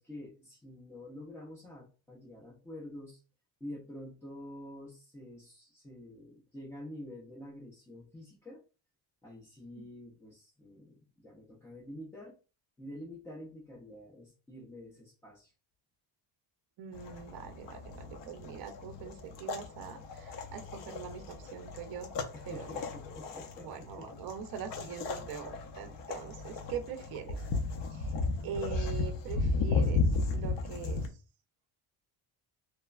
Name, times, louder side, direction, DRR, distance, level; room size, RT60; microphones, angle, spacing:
voice 1, 0.0-3.2 3.6-8.6 9.2-12.4 12.8-15.5 22.3-24.1 24.8-24.9, left 1 dB, 5° left, -5 dB, 0.3 m, -47 dB
voice 2, 16.8-22.1 22.5-22.8 23.6-27.4 27.9-28.1 28.4-31.0, right 7 dB, 50° right, 7 dB, 0.5 m, -43 dB
sound 1, 16.9-31.1, left 3 dB, 60° left, 0.6 m, -35 dB
3.1 x 2.1 x 2.3 m, 0.34 s
cardioid pair, 150°, 48 cm